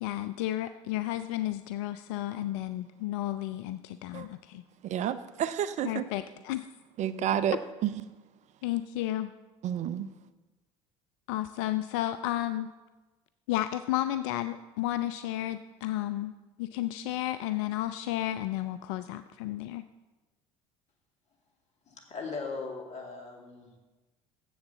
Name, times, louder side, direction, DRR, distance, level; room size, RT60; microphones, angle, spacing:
voice 1, 0.0-4.6 5.8-6.6 8.6-9.3 11.3-12.7 13.5-16.3 16.6-19.8, left 14 dB, 65° left, 12 dB, 0.4 m, -32 dB
voice 2, 4.8-6.1 7.0-8.0 9.6-10.1, right 10 dB, 45° right, 13 dB, 0.5 m, -30 dB
voice 3, 21.8-23.8, left 4 dB, 40° left, 2 dB, 2.3 m, -39 dB
7.7 x 7.2 x 7.0 m, 1.2 s
hypercardioid pair, 70°, 17 cm